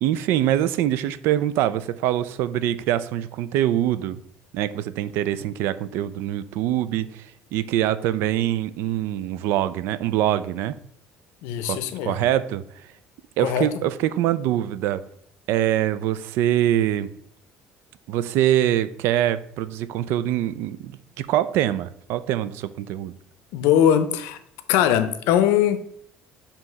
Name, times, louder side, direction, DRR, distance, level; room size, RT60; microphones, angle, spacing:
voice 1, 0.0-4.2 4.5-7.2 7.5-10.8 11.6-12.6 13.4-15.1 15.5-17.1 18.1-23.1, right 12 dB, 70° right, 0.3 m, -24 dB
voice 2, 11.4-12.1 13.4-13.7 23.5-24.4 24.7-25.8, left 10 dB, 85° left, 0.6 m, -20 dB
7.5 x 2.9 x 4.6 m
cardioid pair, 155°, 4 cm